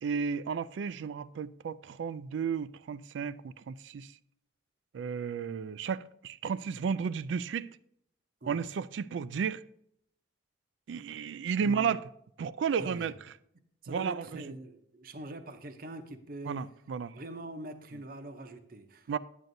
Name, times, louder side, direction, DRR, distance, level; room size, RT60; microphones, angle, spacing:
voice 1, 0.0-4.1 4.9-7.7 8.5-9.6 10.9-12.1 12.4-13.1 13.9-14.5 16.4-17.2 19.1-19.2, right 6 dB, 80° right, 0.3 m, -33 dB
voice 2, 11.6-12.0 12.8-13.1 13.8-16.6 17.1-19.1, right 2 dB, 50° right, 0.7 m, -43 dB
9.3 x 8.9 x 2.6 m
head